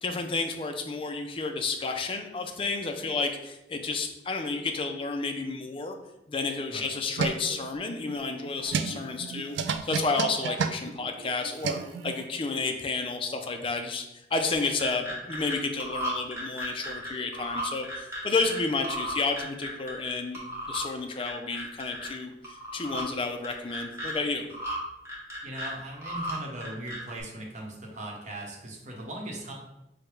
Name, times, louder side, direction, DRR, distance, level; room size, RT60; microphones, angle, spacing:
voice 1, 0.0-6.0 6.3-14.0 14.3-20.4 20.7-24.5, left 3 dB, 30° left, 5 dB, 0.4 m, -31 dB
sound 1, 6.7-12.3, right 6 dB, 75° right, 0.3 m, -32 dB
sound 2, 14.5-15.5 15.8-18.6 18.8-20.1 20.3-20.8 21.2-22.1 22.4-23.0 23.4-24.1 24.5-24.8 25.1-26.4 26.6-27.2, equal, 15° right, 1.1 m, -35 dB
voice 2, 25.4-29.5, right 1 dB, 40° right, -1 dB, 0.9 m, -39 dB
4.8 x 2.2 x 4.6 m, 0.89 s
head